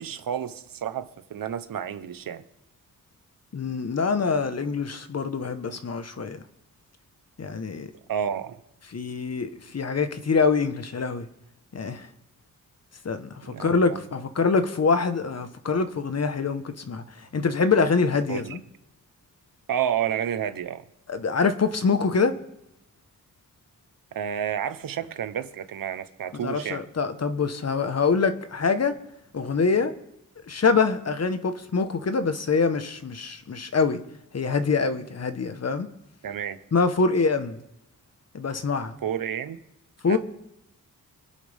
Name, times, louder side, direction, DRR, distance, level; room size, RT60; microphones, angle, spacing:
voice 1, 0.0-2.4 8.1-8.6 13.5-14.0 18.3-18.6 19.7-20.8 24.1-26.8 36.2-36.6 39.0-39.6 40.0-40.2, right 9 dB, 90° right, 1.0 m, -30 dB
voice 2, 3.5-6.4 7.4-7.9 8.9-11.3 11.7-12.1 13.0-18.6 21.1-22.3 26.4-29.0 29.3-29.9 30.5-34.0 34.3-35.9 36.7-37.6 38.3-39.0 40.0-40.2, left 4 dB, 50° left, 1.3 m, -25 dB
25.5 x 10.5 x 3.6 m
cardioid pair, 75°, 33 cm